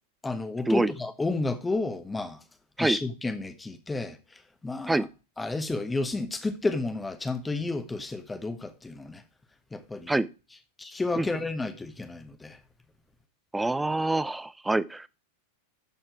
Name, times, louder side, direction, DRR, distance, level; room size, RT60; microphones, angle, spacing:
voice 1, 0.2-2.4 2.8-4.2 4.6-5.1 5.4-9.2 9.7-10.1 10.8-12.6, left 3 dB, 10° left, 1.2 m, -31 dB
voice 2, 13.5-15.1, right 2 dB, 5° right, 0.4 m, -26 dB
12.5 x 4.4 x 4.7 m
figure-of-eight pair, 90°, 0 cm